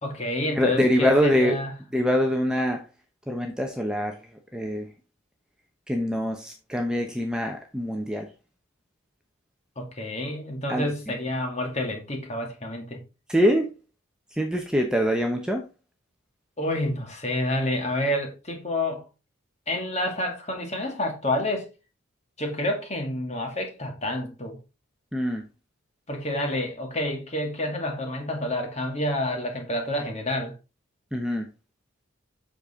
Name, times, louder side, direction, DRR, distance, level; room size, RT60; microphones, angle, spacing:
voice 1, 0.0-1.7 9.8-13.0 16.6-19.0 19.7-21.7 22.4-24.6 26.1-30.5, left 1 dB, 30° left, 2.3 m, -29 dB
voice 2, 0.5-1.6 1.9-2.8 3.3-4.2 4.5-4.9 5.9-8.3 10.7-10.9 13.3-13.7 14.3-15.6 25.1-25.4 31.1-31.5, equal, 5° right, 0.9 m, -24 dB
8.0 x 6.7 x 3.7 m
head